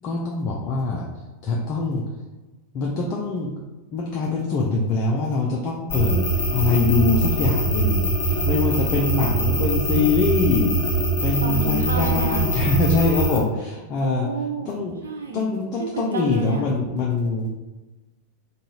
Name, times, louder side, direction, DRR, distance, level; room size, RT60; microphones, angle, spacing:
voice 1, 0.0-1.1 1.4-2.0 2.7-3.5 3.9-14.3 14.6-14.9 15.3-17.5, left 3 dB, 35° left, -2 dB, 0.5 m, -23 dB
sound 1, 5.9-13.4, right 2 dB, 55° left, 1.2 m, -23 dB
voice 2, 11.4-12.5 14.0-14.7 15.0-15.5 15.8-16.7, right 2 dB, 70° right, 2 dB, 0.4 m, -30 dB
3.8 x 2.3 x 2.9 m, 1.2 s
figure-of-eight pair, 90°, 0 cm